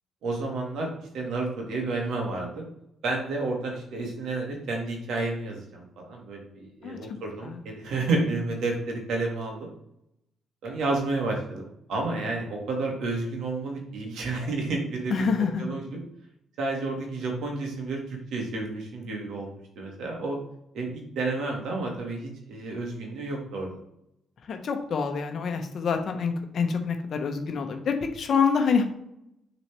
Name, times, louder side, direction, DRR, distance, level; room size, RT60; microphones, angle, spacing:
voice 1, 0.2-2.6 3.0-9.7 10.6-11.6 11.9-15.3 15.6-16.0 16.6-20.4 20.7-23.8, right 3 dB, 75° right, 1 dB, 1.8 m, -31 dB
voice 2, 6.8-7.2 15.1-15.6 24.5-28.8, left 5 dB, 55° left, 5 dB, 0.9 m, -26 dB
6.9 x 4.0 x 3.4 m, 0.81 s
cardioid pair, 90°, 0 cm